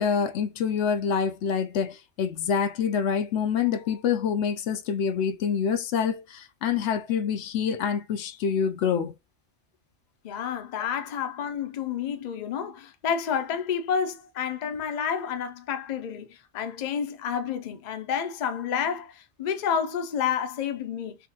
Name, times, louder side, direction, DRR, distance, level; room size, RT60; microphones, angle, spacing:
voice 1, 0.0-9.1, left 7 dB, 85° left, 0.9 m, -26 dB
voice 2, 10.2-21.2, left 7 dB, 50° left, 0.6 m, -30 dB
3.6 x 2.8 x 2.7 m
omnidirectional pair, 1.1 m